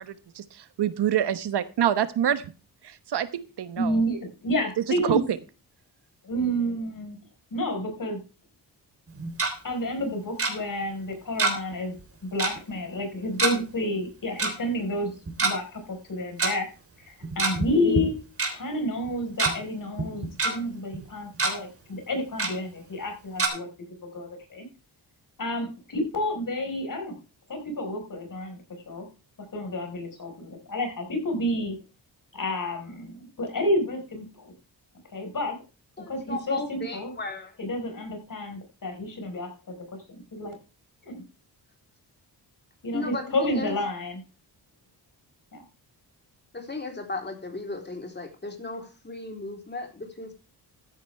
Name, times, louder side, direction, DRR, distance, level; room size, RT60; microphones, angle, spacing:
voice 1, 0.0-2.5 2.8-4.0 5.0-5.2, right 10 dB, 70° right, 13 dB, 1.0 m, -26 dB
voice 2, 3.8-5.2 6.2-7.2 7.5-8.2 9.6-15.1 15.4-16.7 17.0-18.2 18.5-23.7 24.0-24.7 25.4-27.2 27.5-28.6 28.9-29.1 29.5-31.8 32.3-34.5 35.1-35.6 36.1-37.1 37.6-39.7 40.1-40.5 41.0-41.2 42.8-44.2 45.5-45.6, left 1 dB, 50° left, 4 dB, 4.5 m, -30 dB
Tick-tock, 9.1-9.5 10.4-10.5 11.4-11.7 12.0-12.1 12.4-12.6 13.4-13.5 14.4-14.5 15.3-15.5 16.4-16.5 17.2-17.7 18.0-18.1 18.4-18.5 19.1-19.5 20.0-20.5 20.9-21.0 21.3-21.5 22.4-22.5 23.4-23.5, right 3 dB, 35° right, 3.4 m, -25 dB
voice 3, 36.0-37.5 42.9-43.8 46.5-50.3, left 3 dB, 25° left, 4 dB, 3.4 m, -35 dB
14.0 x 10.0 x 3.3 m, 0.32 s
cardioid pair, 100°, 42 cm